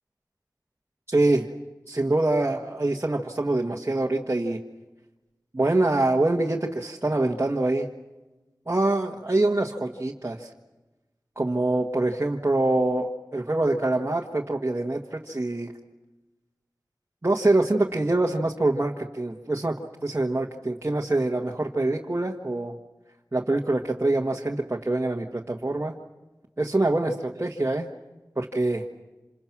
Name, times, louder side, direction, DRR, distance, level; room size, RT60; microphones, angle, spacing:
voice 1, 1.1-1.5 1.9-4.6 5.5-7.9 8.7-10.5 11.4-15.7 17.2-22.8 23.3-25.9 26.6-27.1 27.4-27.9 28.4-28.8, right 2 dB, 35° right, 0 dB, 1.6 m, -25 dB
27.5 x 27.5 x 6.1 m, 1.1 s
wide cardioid pair, 45°, 7 cm